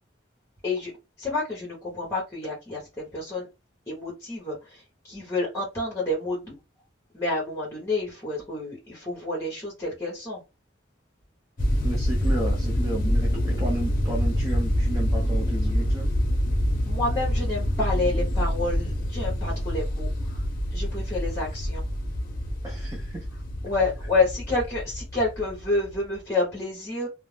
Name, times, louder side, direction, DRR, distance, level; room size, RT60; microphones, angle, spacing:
voice 1, 1.2-3.5 3.9-6.5 7.1-10.4 16.9-20.4 20.7-21.8 23.6-27.1, left 2 dB, 20° left, 1.0 m, -29 dB
sound 1, 11.6-26.2, equal, 50° left, 0.6 m, -26 dB
voice 2, 11.8-16.1 22.6-23.3, right 1 dB, 15° right, 0.5 m, -33 dB
2.5 x 2.0 x 3.2 m
head